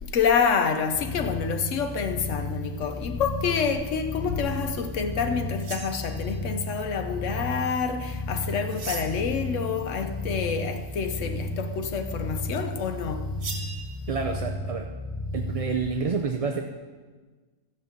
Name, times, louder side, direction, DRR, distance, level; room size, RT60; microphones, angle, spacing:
voice 1, 0.0-13.4, left 6 dB, 70° left, 1.2 m, -28 dB
sound 1, 0.8-15.8, left 2 dB, 10° left, 1.1 m, -33 dB
sound 2, 5.5-6.5 8.7-9.4 13.4-13.8, right 4 dB, 85° right, 1.6 m, -38 dB
voice 2, 14.1-14.9 15.3-16.6, right 5 dB, 40° right, 0.5 m, -28 dB
14.0 x 5.4 x 7.1 m
omnidirectional pair, 1.3 m